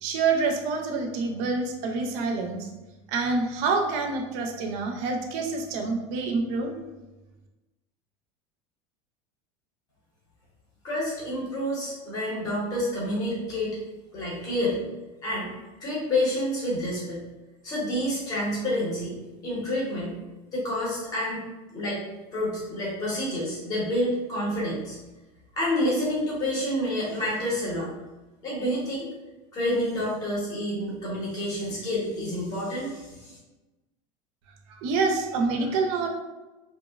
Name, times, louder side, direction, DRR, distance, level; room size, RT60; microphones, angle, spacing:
voice 1, 0.0-2.7 3.1-6.7 34.7-36.1, right 4 dB, 50° right, 3 dB, 0.4 m, -27 dB
voice 2, 10.8-13.8 14.1-14.8 15.2-15.5 15.8-17.2 17.6-19.1 19.4-20.2 20.5-21.4 21.7-22.0 22.3-25.0 25.5-27.9 28.4-29.1 29.5-33.4, left 1 dB, 25° left, -6 dB, 0.7 m, -28 dB
2.7 x 2.0 x 2.2 m, 1.1 s
cardioid pair, 175°, 15 cm